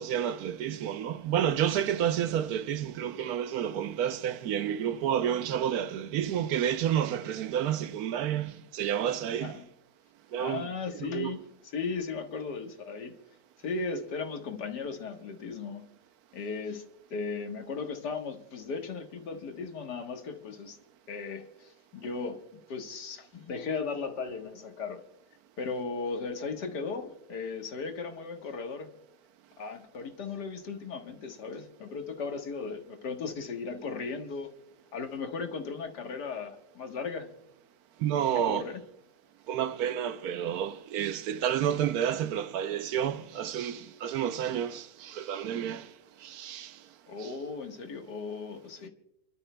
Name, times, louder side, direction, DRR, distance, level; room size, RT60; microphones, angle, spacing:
voice 1, 0.0-9.6 10.3-11.3 38.0-38.7 39.5-45.9 46.2-46.8 47.2-47.3, right 9 dB, 70° right, 1.1 m, -30 dB
voice 2, 10.4-11.5 11.7-13.1 13.6-15.9 16.3-16.8 17.1-20.8 21.1-25.0 25.6-28.9 29.6-34.5 34.9-37.3 38.4-38.8 47.1-48.9, left 4 dB, 80° left, 2.0 m, -36 dB
29.5 x 12.5 x 2.2 m
omnidirectional pair, 1.8 m